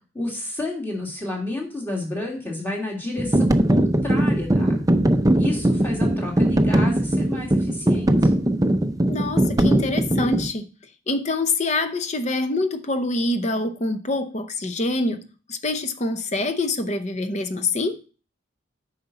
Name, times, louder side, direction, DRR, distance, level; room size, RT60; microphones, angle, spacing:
voice 1, 0.1-4.8 5.4-8.3, left 2 dB, 10° left, -1 dB, 2.2 m, -31 dB
sound 1, 3.2-10.5, right 1 dB, 15° right, 0.5 m, -20 dB
voice 2, 9.1-10.6 11.1-15.2 15.5-18.0, left 2 dB, 35° left, 9 dB, 0.7 m, -25 dB
9.3 x 5.8 x 4.1 m, 0.36 s
head